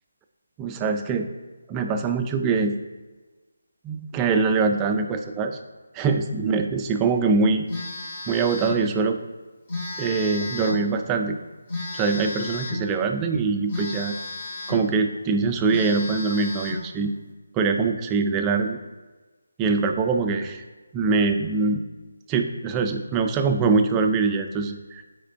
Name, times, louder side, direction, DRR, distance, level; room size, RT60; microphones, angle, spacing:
voice 1, 0.6-1.3 1.7-2.8 3.8-5.6 5.9-7.7 8.3-9.2 10.0-11.4 11.9-14.2 14.7-17.1 17.5-18.8 19.6-20.6 20.9-21.8 22.3-25.1, right 4 dB, 15° right, 6 dB, 0.4 m, -23 dB
Telephone, 7.7-8.9 9.7-10.9 11.7-12.9 13.7-14.9 15.3-15.4 15.7-16.9, left 2 dB, 40° left, 1.6 m, -33 dB
4.8 x 4.4 x 4.5 m, 1.2 s
figure-of-eight pair, 155°, 0 cm